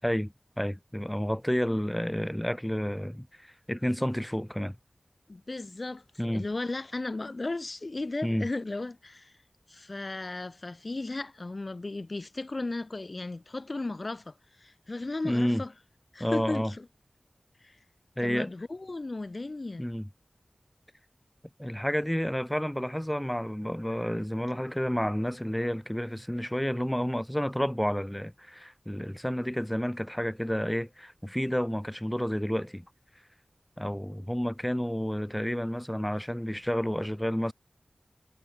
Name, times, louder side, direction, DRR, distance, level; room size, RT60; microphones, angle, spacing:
voice 1, 0.0-4.8 6.2-6.5 8.2-8.5 15.2-15.6 16.2-16.7 18.2-18.5 19.8-20.1 21.6-32.9 33.8-37.5, equal, 5° left, 5.2 m, -30 dB
voice 2, 5.3-9.4 9.7-15.7 16.1-16.9 17.6-17.8 18.2-19.9, left 2 dB, 50° left, 3.3 m, -35 dB
wide cardioid pair, 55°, 0 cm